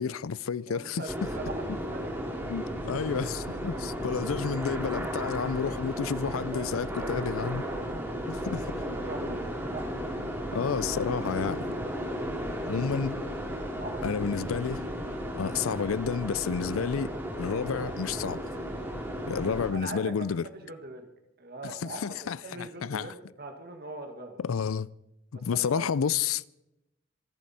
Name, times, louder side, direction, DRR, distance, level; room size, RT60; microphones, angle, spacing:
voice 1, 0.0-1.3 2.5-7.6 8.3-8.7 10.5-11.7 12.7-13.2 14.0-14.9 15.4-18.5 19.3-20.5 21.6-23.1 24.4-24.9 25.3-26.4, left 6 dB, 80° left, 0.5 m, -30 dB
voice 2, 0.7-2.4 2.9-3.0 3.5-3.8 5.9-7.2 7.7-8.0 9.0-9.9 13.8-14.1 19.7-21.1 21.4-24.4 25.3-25.9, right 2 dB, 50° right, 1.5 m, -42 dB
sound 1, 1.1-19.7, equal, 10° right, 2.8 m, -34 dB
26.0 x 11.0 x 4.2 m
head